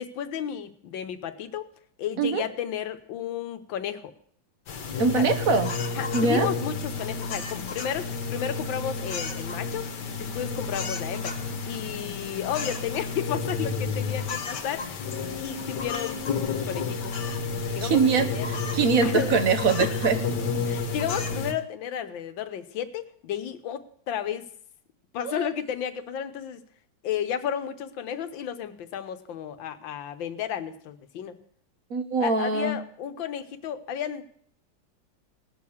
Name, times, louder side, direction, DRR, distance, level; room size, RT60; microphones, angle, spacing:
voice 1, 0.0-1.7 2.0-4.1 5.1-5.3 6.0-9.9 10.2-15.0 15.4-17.1 17.7-18.5 19.0-19.4 19.8-20.0 20.7-24.5 25.1-26.6 27.0-31.4 32.2-34.2, left 9 dB, 80° left, 10 dB, 1.7 m, -33 dB
sound 1, 4.7-21.5, left 4 dB, 65° left, 1.8 m, -31 dB
voice 2, 5.0-5.7 6.1-6.5 17.8-18.3 18.7-20.2 25.2-25.5 31.9-32.8, right 5 dB, 55° right, 9 dB, 1.3 m, -23 dB
18.0 x 6.7 x 7.1 m, 0.63 s
omnidirectional pair, 2.1 m